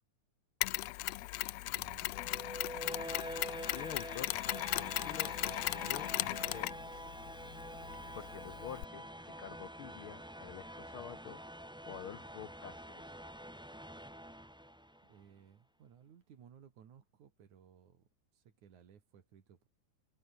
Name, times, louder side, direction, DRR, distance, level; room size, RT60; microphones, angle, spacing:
Mechanisms, 0.6-8.8, left 19 dB, 85° left, 1.4 m, -38 dB
voice 1, 1.7-2.2 2.5-2.9 15.1-18.1 18.3-19.7, right 8 dB, 70° right, 3.8 m, -60 dB
sound 1, 2.1-15.1, equal, 5° right, 0.9 m, -46 dB
voice 2, 3.7-6.9 8.1-11.4 11.8-13.2, left 9 dB, 70° left, 1.3 m, -48 dB
sound 2, 3.7-4.5 4.8-5.8 6.3-7.1 7.4-8.4, right 4 dB, 40° right, 4.5 m, -63 dB
omnidirectional pair, 3.6 m